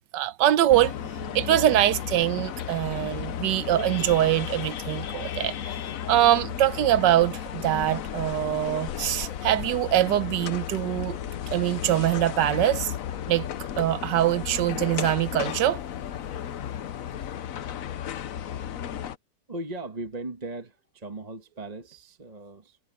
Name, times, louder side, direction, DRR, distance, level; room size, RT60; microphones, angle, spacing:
voice 1, 0.1-5.6 6.1-11.2 11.5-12.9 13.3-13.5 13.8-15.8, right 13 dB, 75° right, 1.3 m, -23 dB
sound 1, 0.7-19.2, left 9 dB, 60° left, 1.0 m, -34 dB
voice 2, 19.5-22.8, right 2 dB, 25° right, 1.3 m, -38 dB
omnidirectional pair, 2.0 m